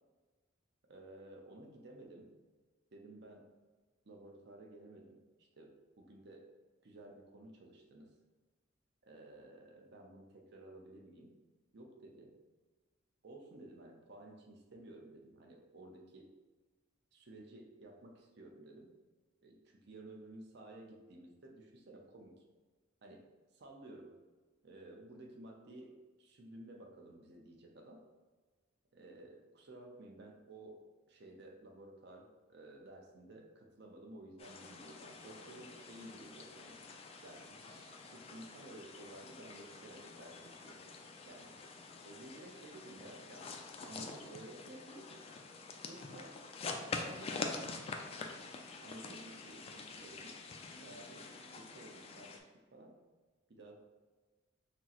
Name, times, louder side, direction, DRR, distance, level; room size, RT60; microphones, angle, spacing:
voice 1, 0.9-2.3 2.9-3.5 4.1-6.5 6.8-8.1 9.0-11.3 11.7-12.3 13.2-16.3 17.1-18.9 19.4-22.4 23.0-23.3 23.5-24.2 24.6-28.0 28.9-36.8 37.2-40.8 41.3-41.6 42.1-43.5 43.8-45.1 45.8-46.4 47.0-47.7 48.2-48.4 48.8-50.3 50.8-53.0 53.5-53.8, right 1 dB, 55° right, 1 dB, 0.6 m, -54 dB
sound 1, 34.4-52.4, left 4 dB, 30° left, 0.3 m, -46 dB
5.9 x 2.0 x 2.9 m, 1.3 s
head